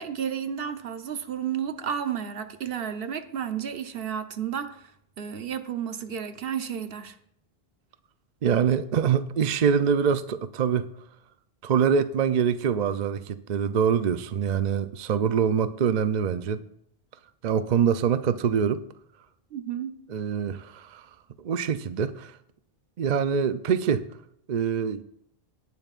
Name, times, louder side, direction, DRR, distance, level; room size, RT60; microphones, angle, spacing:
voice 1, 0.0-4.9 5.2-7.2 19.5-19.9, right 8 dB, 70° right, 1.0 m, -32 dB
voice 2, 8.4-10.9 11.6-16.6 17.4-18.8 20.1-21.0 21.4-22.3 23.0-24.1 24.5-25.0, right 7 dB, 55° right, 0.6 m, -24 dB
18.5 x 8.9 x 2.5 m
omnidirectional pair, 1.0 m